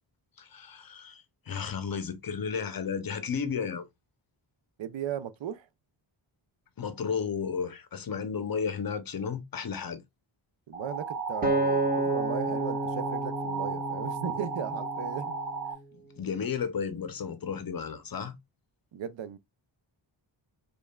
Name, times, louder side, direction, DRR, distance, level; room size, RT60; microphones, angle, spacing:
voice 1, 0.4-3.9 6.8-10.0 15.9-18.4, left 6 dB, 45° left, 0.6 m, -33 dB
voice 2, 4.8-5.7 10.7-15.3 18.9-19.4, right 8 dB, 70° right, 0.6 m, -37 dB
sound 1, 10.7-15.7, right 5 dB, 40° right, 2.2 m, -35 dB
Acoustic guitar, 11.4-15.8 16.4-16.6, right 2 dB, 15° right, 1.1 m, -31 dB
5.1 x 2.4 x 2.2 m
wide cardioid pair, 130°, 48 cm